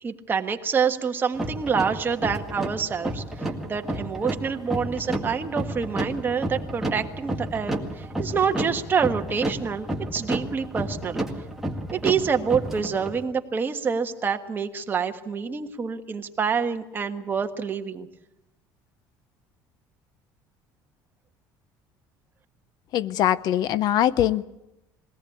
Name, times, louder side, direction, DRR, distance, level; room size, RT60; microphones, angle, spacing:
voice 1, 0.0-9.9 10.1-11.2 11.9-18.1, right 6 dB, 25° right, 5 dB, 1.5 m, -27 dB
sound 1, 1.3-13.2, right 1 dB, 5° right, 2.0 m, -31 dB
voice 2, 22.9-24.4, left 11 dB, 55° left, 18 dB, 0.7 m, -22 dB
22.0 x 18.0 x 8.5 m, 0.93 s
cardioid pair, 135°, 8 cm